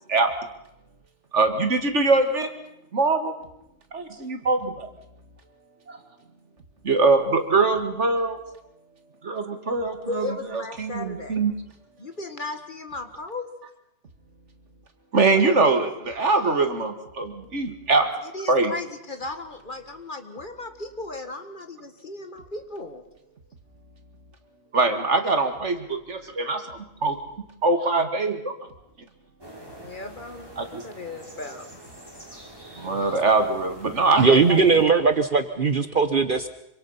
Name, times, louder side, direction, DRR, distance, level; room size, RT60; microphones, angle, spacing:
voice 1, 1.3-2.5 2.9-3.3 3.9-4.9 5.9-6.0 6.8-8.4 9.2-10.2 10.5-11.5 15.1-18.1 18.5-18.7 24.7-27.2 27.6-28.5 30.6-30.9 32.8-34.6, right 3 dB, 70° right, 7 dB, 2.3 m, -23 dB
voice 2, 10.0-11.4 12.0-13.5 18.2-23.0 29.8-31.7, left 3 dB, 40° left, 7 dB, 1.9 m, -36 dB
sound 1, 29.4-34.8, equal, 20° right, 5.8 m, -45 dB
voice 3, 34.2-36.5, right 4 dB, 45° right, 10 dB, 1.1 m, -19 dB
26.5 x 25.0 x 5.7 m, 0.83 s
omnidirectional pair, 1.3 m